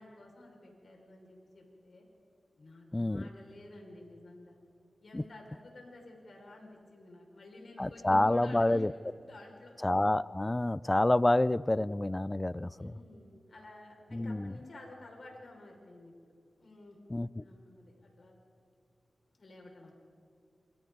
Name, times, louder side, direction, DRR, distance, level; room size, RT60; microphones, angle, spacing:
voice 1, 0.0-2.1 2.6-4.5 5.0-9.8 12.7-17.0 17.4-18.4 19.4-19.9, left 2 dB, 65° left, 0 dB, 5.8 m, -52 dB
voice 2, 2.9-3.3 5.1-5.2 7.8-8.9 9.8-13.0 14.1-14.5 17.1-17.4, left 1 dB, 25° left, 18 dB, 0.5 m, -28 dB
27.5 x 25.0 x 4.1 m, 2.4 s
cardioid pair, 50°, 0 cm